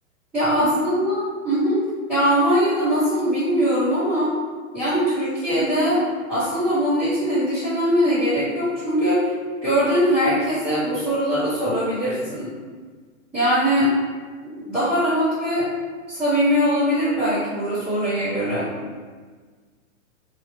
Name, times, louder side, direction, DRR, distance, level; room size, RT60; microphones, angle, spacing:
voice 1, 0.3-1.8 2.1-4.3 4.7-6.0 6.3-9.3 9.6-12.5 13.3-13.9 14.5-15.7 16.1-18.7, equal, ahead, -18 dB, 0.9 m, -21 dB
3.7 x 3.0 x 3.0 m, 1.5 s
hypercardioid pair, 155°, 41 cm